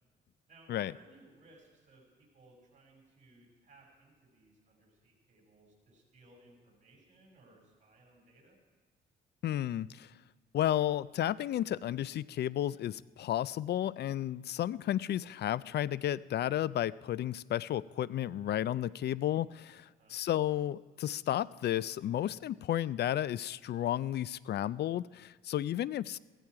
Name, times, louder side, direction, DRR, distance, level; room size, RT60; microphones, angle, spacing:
voice 1, 0.5-8.6 20.0-20.2, right 2 dB, 35° right, -1 dB, 6.1 m, -61 dB
voice 2, 9.4-10.1 10.5-26.2, left 12 dB, 55° left, 20 dB, 0.4 m, -32 dB
16.0 x 15.0 x 4.7 m, 1.4 s
cardioid pair, 90°, 20 cm